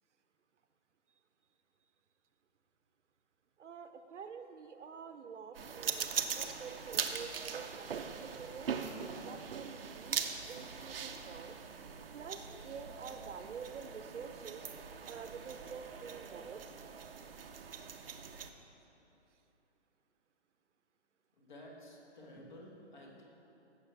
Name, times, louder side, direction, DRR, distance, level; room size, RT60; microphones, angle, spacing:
voice 1, 3.6-7.9 8.2-8.7 9.1-11.6 12.1-14.7 15.1-16.6, right 6 dB, 80° right, 8 dB, 0.8 m, -48 dB
sound 1, 5.5-18.5, right 6 dB, 55° right, 0.6 m, -41 dB
voice 2, 21.4-23.2, left 1 dB, 40° left, -1 dB, 1.6 m, -52 dB
15.0 x 6.7 x 3.4 m, 3.0 s
hypercardioid pair, 175°, 35 cm